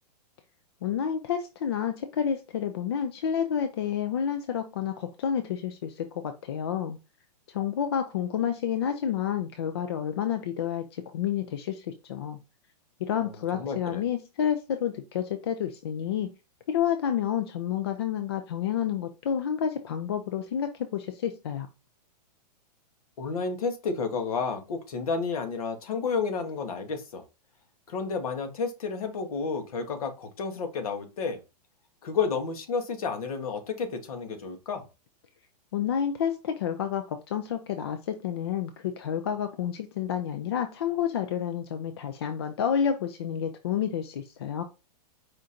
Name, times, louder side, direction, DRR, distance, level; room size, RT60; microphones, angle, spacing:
voice 1, 0.8-7.0 7.5-12.4 13.0-16.3 16.7-21.7 35.7-44.6, left 8 dB, 40° left, 7 dB, 0.4 m, -29 dB
voice 2, 13.2-14.0 23.2-27.2 27.9-31.4 32.0-34.8, left 5 dB, 60° left, 6 dB, 1.2 m, -31 dB
5.0 x 2.5 x 4.2 m, 0.29 s
hypercardioid pair, 175°, 21 cm